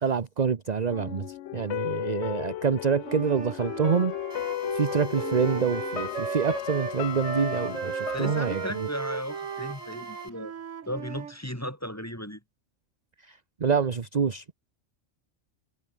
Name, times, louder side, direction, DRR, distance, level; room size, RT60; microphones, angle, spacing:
voice 1, 0.0-4.1 4.7-8.9 13.2-14.5, right 6 dB, 35° right, 0.9 m, -27 dB
sound 1, 0.9-9.9 10.2-10.3, left 13 dB, 70° left, 0.8 m, -35 dB
Wind instrument woodwind instrument, 3.0-11.3, right 8 dB, 75° right, 1.6 m, -36 dB
Drill, 4.3-10.3, left 1 dB, 25° left, 6.1 m, -46 dB
voice 2, 8.1-10.6 10.8-12.4, equal, 10° left, 4.9 m, -35 dB
omnidirectional pair, 1.3 m